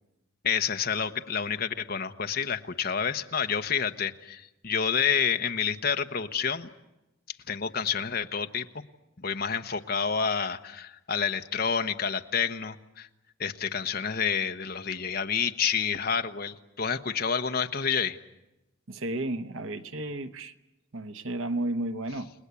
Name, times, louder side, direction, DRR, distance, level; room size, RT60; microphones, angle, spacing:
voice 1, 0.4-6.7 7.5-8.7 9.2-13.1 13.4-18.2, left 6 dB, 45° left, 7 dB, 1.0 m, -29 dB
voice 2, 18.9-20.5 20.9-22.3, right 1 dB, 75° right, 10 dB, 1.1 m, -32 dB
30.0 x 19.5 x 8.3 m, 0.97 s
head